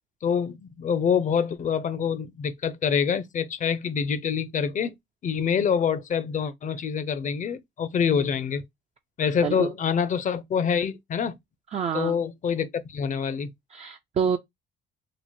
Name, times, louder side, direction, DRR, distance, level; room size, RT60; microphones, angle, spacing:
voice 1, 0.2-4.9 5.2-8.6 9.2-11.4 11.9-13.5, left 7 dB, 40° left, 0.5 m, -26 dB
voice 2, 11.7-12.2 13.7-14.4, right 7 dB, 35° right, 0.4 m, -27 dB
3.0 x 2.1 x 4.1 m
cardioid pair, 90°, 20 cm